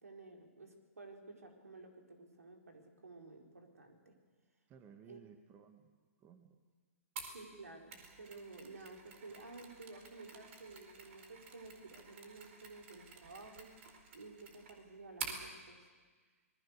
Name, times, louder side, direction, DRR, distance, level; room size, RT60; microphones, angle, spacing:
voice 1, 0.0-4.1 5.1-5.2 7.2-13.7 14.1-15.8, right 3 dB, 85° right, 3 dB, 4.4 m, -53 dB
voice 2, 4.7-6.6 16.2-16.4, right 7 dB, 25° right, 7 dB, 1.8 m, -59 dB
Mechanisms, 7.2-15.4, right 5 dB, 55° right, 4.2 m, -50 dB
27.0 x 20.0 x 6.7 m, 1.5 s
hypercardioid pair, 125°, 8 cm